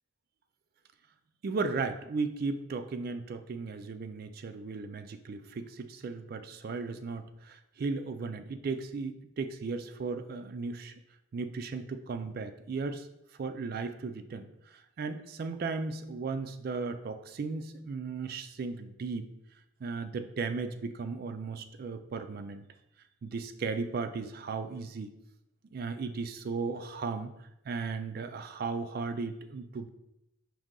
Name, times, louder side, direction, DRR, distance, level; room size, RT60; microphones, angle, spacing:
voice 1, 1.4-10.9 11.3-13.1 13.4-14.5 15.0-19.3 19.8-22.6 23.2-25.1 25.7-27.3 27.7-29.9, right 4 dB, 45° right, 9 dB, 0.3 m, -36 dB
4.9 x 2.7 x 3.7 m, 0.84 s
head